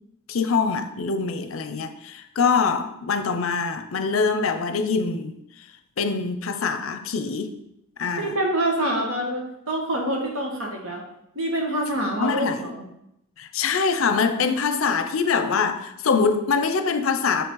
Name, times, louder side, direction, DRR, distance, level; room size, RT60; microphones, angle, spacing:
voice 1, 0.3-5.4 6.0-7.6 8.0-8.3 12.2-12.6 13.4-17.4, left 5 dB, 70° left, 9 dB, 0.6 m, -24 dB
voice 2, 8.1-11.0 11.3-12.8, right 1 dB, 70° right, 0 dB, 1.7 m, -26 dB
6.5 x 5.2 x 3.9 m, 0.80 s
head